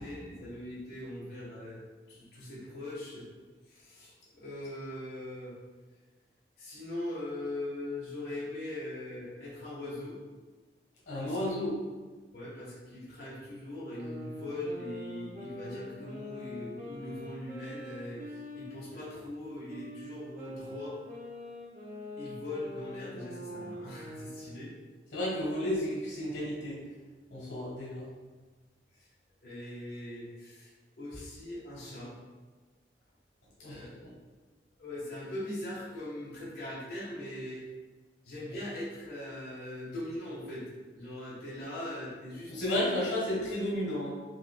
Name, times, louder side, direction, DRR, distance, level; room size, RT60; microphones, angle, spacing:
voice 1, 0.0-1.8 2.1-3.3 3.7-5.5 6.6-10.1 11.2-11.4 12.3-21.0 22.2-24.7 28.9-29.1 29.4-30.7 31.0-32.1 33.6-34.0 34.8-37.6 38.2-40.6 40.9-42.5, left 1 dB, 65° left, -9 dB, 1.2 m, -41 dB
voice 2, 11.1-11.8 25.1-26.8 27.3-28.1 33.6-33.8 42.5-44.1, left 1 dB, 90° left, -5 dB, 1.3 m, -32 dB
sound 1, 13.8-19.2 19.7-24.6, equal, 45° right, 0.6 m, -44 dB
4.7 x 2.7 x 2.2 m, 1.3 s
head